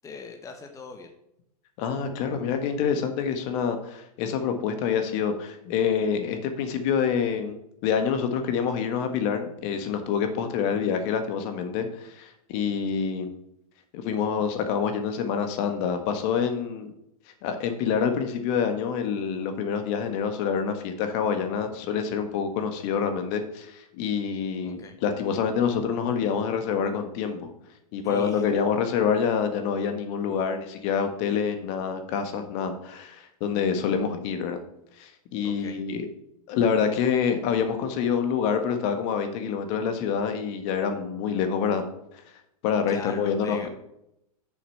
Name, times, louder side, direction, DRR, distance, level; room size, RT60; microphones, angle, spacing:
voice 1, 0.0-1.1 24.6-24.9 28.0-28.6 35.4-35.8 42.9-43.7, left 5 dB, 15° left, 5 dB, 1.0 m, -41 dB
voice 2, 1.8-7.6 7.8-13.3 13.9-16.9 17.4-27.5 27.9-34.6 35.0-36.1 36.5-41.8 42.6-43.7, left 7 dB, 50° left, 7 dB, 1.5 m, -27 dB
6.7 x 6.6 x 5.7 m, 0.80 s
hypercardioid pair, 115°, 20 cm